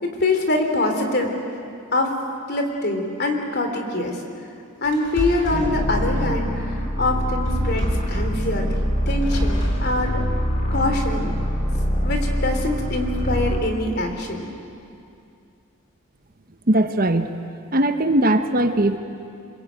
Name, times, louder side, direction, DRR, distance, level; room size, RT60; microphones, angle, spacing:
voice 1, 0.0-1.3 1.9-2.1 2.5-4.2 4.8-6.5 7.0-10.2 10.7-11.3 12.0-14.5, left 2 dB, 45° left, 4 dB, 3.3 m, -24 dB
sound 1, 4.8-5.7 7.5-8.1 9.1-9.9, equal, 65° left, 6.5 m, -28 dB
sound 2, 5.5-13.7, equal, 30° left, 3.3 m, -24 dB
voice 2, 16.7-17.3 17.7-19.0, right 1 dB, 40° right, 8 dB, 1.0 m, -19 dB
27.0 x 21.5 x 9.1 m, 2.6 s
head